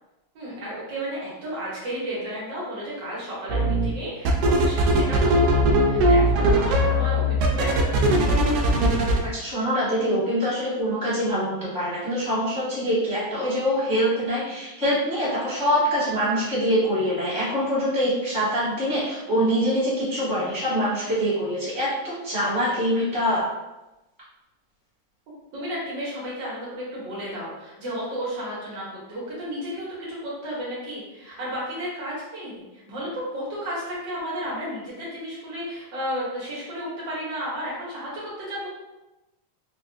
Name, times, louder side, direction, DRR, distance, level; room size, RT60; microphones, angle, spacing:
voice 1, 0.3-8.5 25.5-38.7, equal, 60° right, -6 dB, 1.5 m, -33 dB
sound 1, 3.5-3.9 4.2-9.2, right 1 dB, 90° right, 0.9 m, -20 dB
voice 2, 9.3-23.5, equal, 15° left, -11 dB, 0.9 m, -24 dB
4.2 x 2.3 x 2.6 m, 1.0 s
omnidirectional pair, 2.4 m